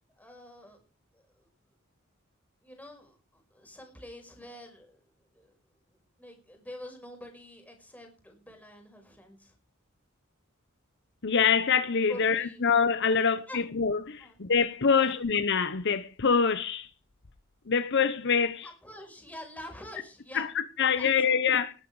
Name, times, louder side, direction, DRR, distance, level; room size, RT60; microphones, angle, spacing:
voice 1, 0.2-0.8 1.1-1.5 2.6-5.5 6.2-9.5 12.1-12.6 13.5-13.6 14.2-14.4 14.9-15.2 18.6-20.5 21.0-21.6, left 1 dB, 5° left, 5.3 m, -47 dB
voice 2, 11.2-16.9 17.7-18.7 20.3-20.5 20.8-21.7, left 6 dB, 55° left, 0.9 m, -25 dB
19.0 x 9.2 x 4.8 m
head